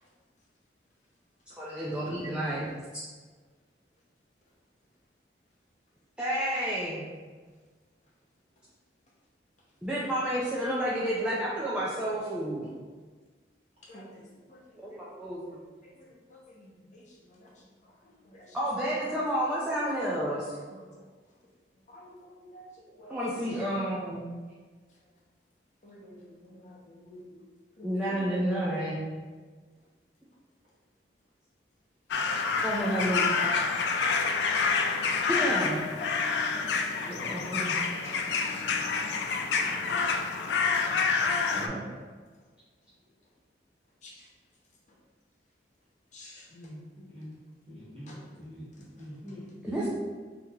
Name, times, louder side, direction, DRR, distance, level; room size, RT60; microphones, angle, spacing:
voice 1, 1.6-3.0 6.2-7.1 9.8-12.7 14.8-15.6 18.5-20.5 23.1-24.2 27.8-29.0 32.6-33.4 35.3-35.8 37.1-37.7 40.9-42.0 49.6-49.9, right 1 dB, 5° right, -7 dB, 0.4 m, -31 dB
voice 2, 16.3-17.0 17.3-17.5 18.3-18.4 20.7-20.8 21.9-22.7 23.0-23.2 25.8-27.4 27.8-28.1 33.0-33.1 39.5-40.1 44.0-44.1 46.1-46.4 48.1-48.2, left 1 dB, 45° left, -4 dB, 0.7 m, -49 dB
sound 1, 32.1-41.7, left 5 dB, 70° left, 0.3 m, -28 dB
voice 3, 47.7-48.6 49.0-49.9, left 1 dB, 35° right, -9 dB, 1.4 m, -43 dB
2.9 x 2.8 x 3.5 m, 1.4 s
head